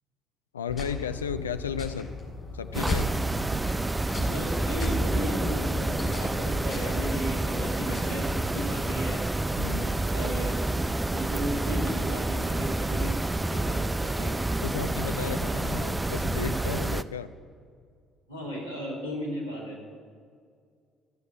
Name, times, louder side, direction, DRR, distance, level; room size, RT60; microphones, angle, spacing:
voice 1, 0.5-2.1 2.5-3.1 9.6-10.1 14.6-17.3, left 7 dB, 80° left, 12 dB, 0.4 m, -34 dB
sound 1, 0.7-8.8, left 3 dB, 30° left, 3.8 m, -37 dB
sound 2, 2.7-17.0, right 2 dB, 15° right, 0.4 m, -28 dB
voice 2, 4.1-9.3 10.1-14.4 18.3-19.8, equal, 85° right, -6 dB, 2.4 m, -36 dB
13.5 x 7.2 x 7.3 m, 2.1 s
figure-of-eight pair, 50°, 0 cm